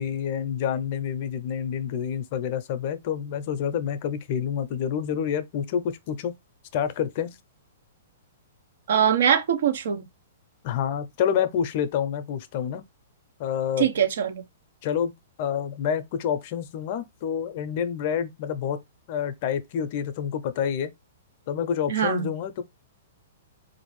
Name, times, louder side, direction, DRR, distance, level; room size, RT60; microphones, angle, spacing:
voice 1, 0.0-6.4 6.7-7.3 10.6-12.8 13.4-13.9 14.8-15.1 15.4-18.8 19.1-20.9 21.5-22.6, left 8 dB, 50° left, 0.5 m, -28 dB
voice 2, 8.9-10.1 13.8-14.4 21.9-22.3, right 8 dB, 70° right, 0.6 m, -22 dB
4.0 x 2.6 x 3.1 m
hypercardioid pair, 130°, 0 cm